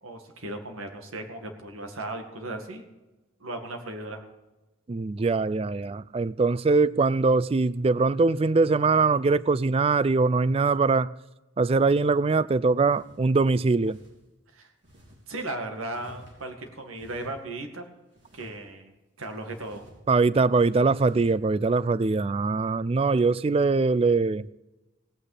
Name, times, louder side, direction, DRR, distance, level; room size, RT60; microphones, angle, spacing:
voice 1, 0.0-2.9 3.4-4.2 14.5-14.7 15.3-17.9 18.3-18.9 19.2-19.8, right 2 dB, 90° right, 2.1 m, -36 dB
voice 2, 4.9-11.1 11.6-14.0 20.1-24.5, right 3 dB, 30° right, 0.3 m, -22 dB
sound 1, 12.2-12.3 12.7-13.2 13.8-14.1 14.8-15.2 15.9-16.6 16.9-17.4 18.1-18.6 19.2-20.0 20.3-20.4 20.8-21.3, equal, 60° right, 3.5 m, -51 dB
17.0 x 8.8 x 5.0 m
head